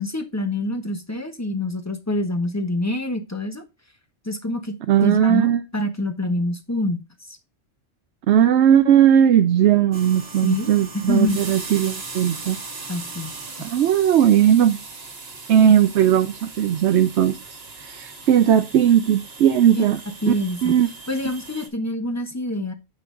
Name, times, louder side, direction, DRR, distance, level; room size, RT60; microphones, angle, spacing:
voice 1, 0.0-3.6 4.2-4.7 5.0-7.4 10.4-10.7 11.1-11.4 12.9-13.3 13.6-13.7 15.6-15.7 19.7-19.9 20.2-20.7 21.1-22.7, left 1 dB, 15° left, 1.1 m, -26 dB
voice 2, 4.9-5.6 8.3-12.6 13.6-14.8 15.5-17.4 17.8-20.0 20.3-20.4 20.6-20.9, right 10 dB, 65° right, 0.9 m, -17 dB
sound 1, 9.9-21.7, right 3 dB, 50° right, 1.8 m, -38 dB
7.8 x 5.9 x 3.9 m
omnidirectional pair, 1.3 m